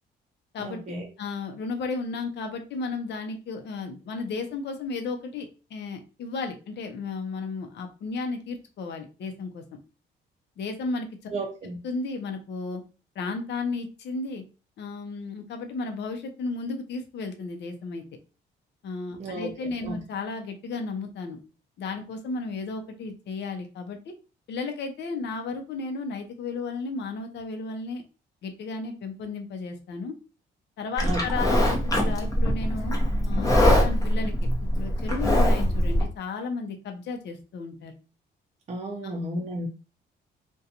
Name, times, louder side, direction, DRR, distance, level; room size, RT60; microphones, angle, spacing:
voice 1, 0.6-1.1 11.3-11.8 19.2-19.5 19.8-20.0 31.0-31.2 38.7-39.7, right 1 dB, 35° right, 0.5 m, -32 dB
voice 2, 1.2-9.6 10.6-11.1 11.8-12.8 13.2-14.4 14.8-18.0 18.8-21.4 21.8-24.1 24.5-28.0 28.4-30.1 30.8-33.0 33.3-34.5 34.8-37.9 39.0-39.1, left 4 dB, 60° left, 0.6 m, -34 dB
Livestock farm animals working animals, 31.0-36.0, equal, 15° left, 0.8 m, -22 dB
2.4 x 2.2 x 2.7 m
cardioid pair, 90°, 20 cm